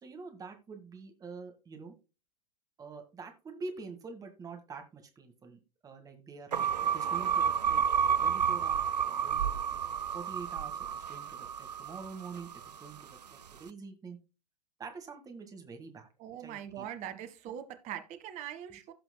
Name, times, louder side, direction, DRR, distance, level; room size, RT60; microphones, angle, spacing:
voice 1, 0.0-1.9 2.8-14.2 14.8-16.1 16.4-16.8, right 4 dB, 15° right, 1.7 m, -46 dB
sound 1, 6.5-12.9, right 7 dB, 80° right, 0.5 m, -30 dB
voice 2, 16.2-18.9, right 10 dB, 35° right, 1.3 m, -42 dB
16.5 x 5.9 x 2.2 m
figure-of-eight pair, 95°, 21 cm